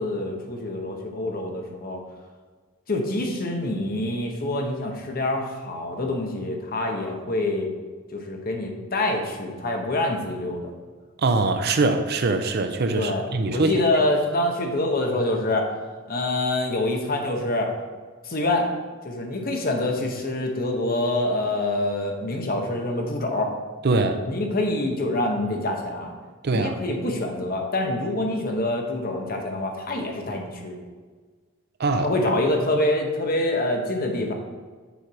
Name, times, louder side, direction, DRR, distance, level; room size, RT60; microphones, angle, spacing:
voice 1, 0.0-2.0 2.9-7.7 8.1-10.7 13.0-13.2 13.5-15.7 16.1-17.7 18.2-18.7 19.0-23.5 24.2-26.1 26.5-30.8 32.0-34.3, left 1 dB, 45° left, 2 dB, 1.0 m, -26 dB
voice 2, 11.2-13.8 23.8-24.2 26.4-26.8 31.8-32.1, right 3 dB, 50° right, 8 dB, 0.5 m, -22 dB
7.3 x 4.5 x 4.8 m, 1.4 s
head